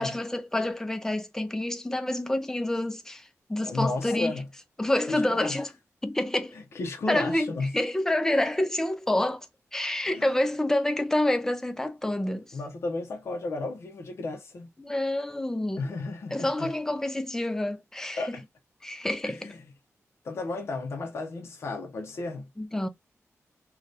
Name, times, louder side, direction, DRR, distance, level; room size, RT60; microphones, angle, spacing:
voice 1, 0.0-4.4 4.8-5.7 6.0-6.5 7.1-9.5 9.7-12.6 14.8-15.8 16.3-18.4 18.8-19.5 22.6-22.9, left 1 dB, 10° left, 0.4 m, -28 dB
voice 2, 3.6-4.5 5.1-5.6 6.5-7.7 10.1-10.2 12.5-14.7 15.8-16.7 18.2-18.4 19.2-19.6 20.2-22.5, left 3 dB, 55° left, 0.6 m, -33 dB
2.6 x 2.3 x 3.2 m
wide cardioid pair, 170°, 5 cm